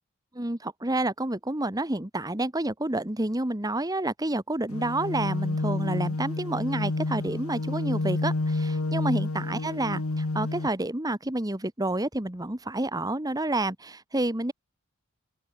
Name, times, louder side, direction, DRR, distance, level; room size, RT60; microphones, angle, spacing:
voice 1, 0.3-14.5, right 2 dB, 15° right, 1.5 m, -29 dB
sound 1, 4.7-10.7, left 2 dB, 75° left, 1.2 m, -29 dB
open air
head